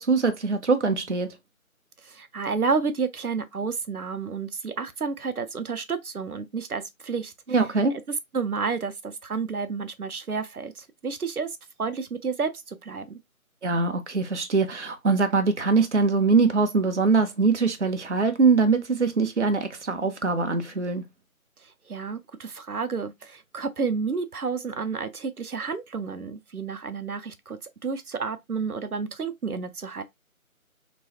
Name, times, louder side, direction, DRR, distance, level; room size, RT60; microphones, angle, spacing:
voice 1, 0.0-1.4 7.5-7.9 13.6-21.1, right 4 dB, 55° right, 0.6 m, -22 dB
voice 2, 2.0-7.6 7.9-8.0 8.3-11.5 11.8-13.2 21.6-30.0, right 5 dB, 90° right, 0.7 m, -31 dB
3.1 x 3.0 x 2.8 m
figure-of-eight pair, 165°, 43 cm